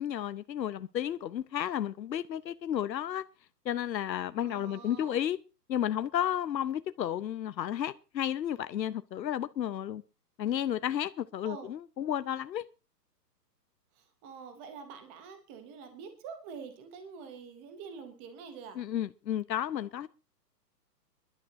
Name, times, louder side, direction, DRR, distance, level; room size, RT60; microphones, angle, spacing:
voice 1, 0.0-3.2 3.6-5.4 5.7-10.0 10.4-12.6 18.8-20.1, left 10 dB, 90° left, 0.8 m, -32 dB
voice 2, 4.4-5.2 11.4-11.7 14.0-18.8, right 6 dB, 10° right, 0.6 m, -46 dB
25.5 x 11.5 x 2.7 m
hypercardioid pair, 155°, 49 cm